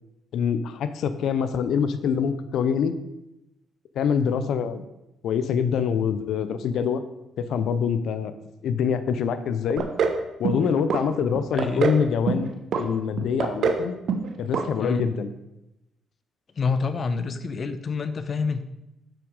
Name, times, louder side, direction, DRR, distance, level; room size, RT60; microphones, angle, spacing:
voice 1, 0.3-2.9 3.9-4.8 5.2-7.0 7.4-8.3 8.6-9.9 10.4-14.0 14.4-15.3, left 7 dB, 75° left, 11 dB, 0.8 m, -25 dB
sound 1, 9.8-10.2 10.4-11.0 11.3-12.0 12.3-12.8 13.2-13.8 14.1-14.3 14.5-14.7 15.0-15.1, right 6 dB, 65° right, 1.1 m, -24 dB
voice 2, 11.5-11.9 14.8-15.1 16.6-18.6, left 4 dB, 45° left, 11 dB, 0.9 m, -27 dB
8.7 x 6.1 x 6.5 m, 0.91 s
cardioid pair, 90°, 0 cm